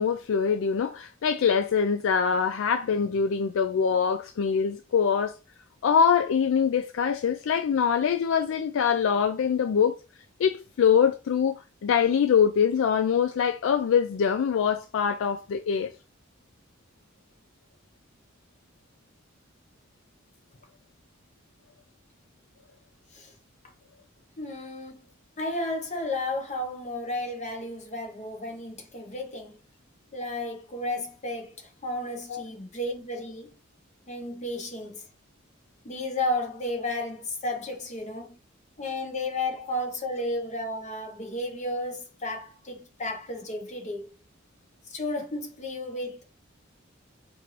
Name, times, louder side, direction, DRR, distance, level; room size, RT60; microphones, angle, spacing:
voice 1, 0.0-5.3 5.8-9.9 10.4-11.6 11.8-15.9 32.3-32.4, left 7 dB, 65° left, 0.3 m, -24 dB
voice 2, 24.4-25.0 25.4-29.6 30.1-33.5 34.1-35.0 35.8-38.3 38.8-44.1 44.9-46.2, left 1 dB, 35° left, 1.0 m, -33 dB
4.4 x 2.6 x 3.1 m
head